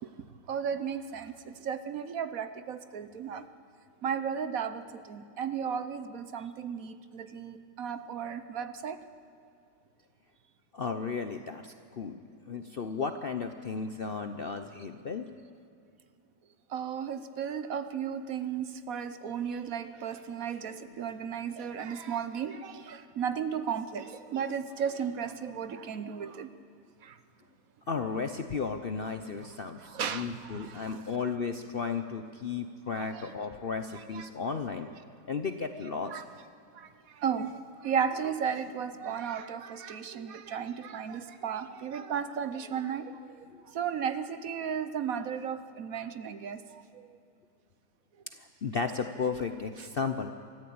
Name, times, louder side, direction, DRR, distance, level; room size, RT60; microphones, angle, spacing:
voice 1, 0.5-3.5 4.0-9.0 16.7-26.5 27.0-27.2 29.4-29.5 29.8-31.2 32.9-33.3 33.9-34.9 35.7-36.2 36.7-47.2 49.8-49.9, right 7 dB, 60° right, 11 dB, 1.1 m, -35 dB
voice 2, 10.7-12.2 12.5-15.3 27.9-34.9 35.3-36.2 43.5-43.6 48.4-50.3, left 5 dB, 50° left, 7 dB, 0.7 m, -34 dB
23.5 x 14.5 x 8.6 m, 2.5 s
omnidirectional pair, 1.8 m